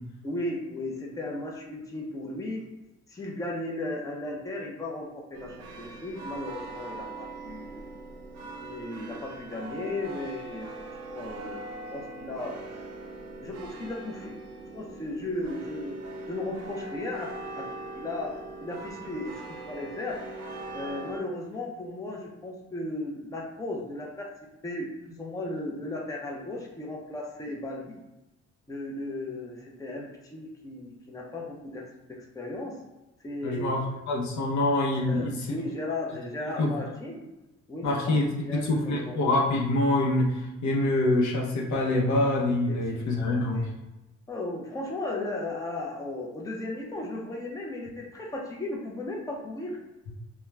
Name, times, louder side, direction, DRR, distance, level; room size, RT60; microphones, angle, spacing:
voice 1, 0.2-2.6 3.1-7.9 8.6-12.6 13.4-14.4 14.7-16.0 16.3-18.3 18.6-20.2 20.7-24.3 24.6-28.0 28.7-31.8 32.1-32.7 33.2-33.9 35.0-37.2 37.7-39.2 42.7-43.7 44.3-49.8, left 2 dB, 10° left, -1 dB, 0.5 m, -36 dB
sound 1, 5.3-21.2, right 2 dB, 55° right, 0.5 m, -41 dB
voice 2, 33.4-35.6 36.6-36.7 37.8-43.6, left 2 dB, 70° left, -1 dB, 0.7 m, -25 dB
2.3 x 2.2 x 3.1 m, 1.0 s
cardioid pair, 90°, 30 cm